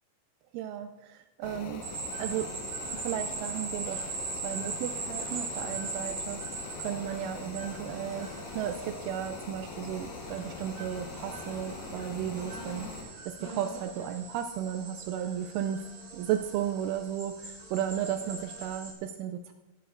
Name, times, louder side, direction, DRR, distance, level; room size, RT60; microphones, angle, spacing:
voice 1, 0.5-1.8 2.2-2.5 2.9-4.0 4.4-6.4 6.8-15.9 16.1-19.5, right 10 dB, 85° right, 7 dB, 2.8 m, -34 dB
sound 1, 1.4-13.0, left 4 dB, 70° left, 3.3 m, -42 dB
sound 2, 1.8-18.9, right 3 dB, 50° right, 2.7 m, -41 dB
15.0 x 11.0 x 2.5 m, 1.1 s
omnidirectional pair, 5.8 m